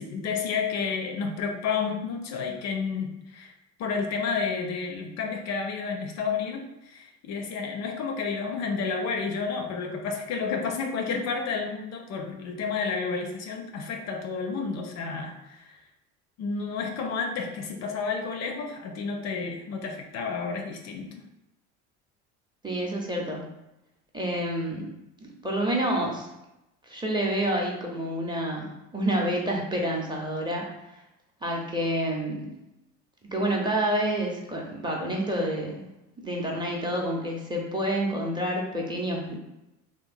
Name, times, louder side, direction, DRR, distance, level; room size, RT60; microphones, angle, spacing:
voice 1, 0.0-3.5 3.8-15.8 16.4-21.2, left 5 dB, 50° left, 4 dB, 0.4 m, -31 dB
voice 2, 22.6-23.4 24.1-24.9 25.2-26.3 26.9-30.7 31.4-32.5 33.3-35.9 36.2-39.4, right 1 dB, 15° right, -1 dB, 0.6 m, -28 dB
2.9 x 2.1 x 2.5 m, 0.92 s
hypercardioid pair, 75°, 35 cm